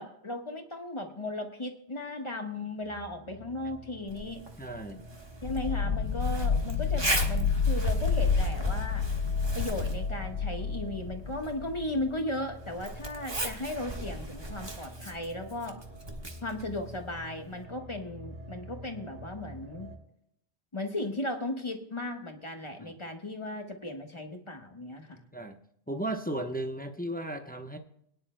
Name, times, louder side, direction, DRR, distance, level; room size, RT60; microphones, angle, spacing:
voice 1, 0.0-4.4 5.4-9.1 9.5-15.8 16.4-19.9 20.7-25.2, left 1 dB, 25° left, 4 dB, 1.3 m, -36 dB
sound 1, 2.5-20.0, right 1 dB, 65° right, 3.6 m, -48 dB
Zipper (clothing), 4.1-17.6, right 1 dB, 25° right, 1.4 m, -38 dB
voice 2, 4.6-5.0 22.8-23.0 25.3-25.6 25.9-27.8, right 1 dB, 10° left, 5 dB, 0.8 m, -35 dB
sound 2, 5.4-12.2, left 5 dB, 70° left, 0.8 m, -29 dB
22.0 x 10.0 x 2.2 m, 0.72 s
omnidirectional pair, 1.1 m